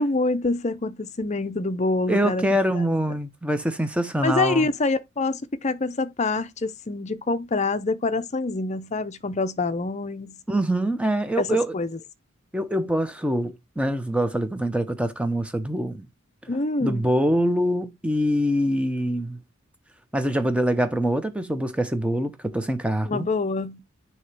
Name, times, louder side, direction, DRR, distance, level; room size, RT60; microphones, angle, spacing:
voice 1, 0.0-2.5 2.7-2.9 4.2-10.4 11.4-12.0 16.5-17.1 23.0-23.8, left 3 dB, 30° left, 0.5 m, -26 dB
voice 2, 2.1-4.7 10.5-11.7 12.5-16.1 16.8-19.4 20.1-23.3, equal, 5° right, 0.7 m, -24 dB
6.4 x 2.9 x 5.8 m
head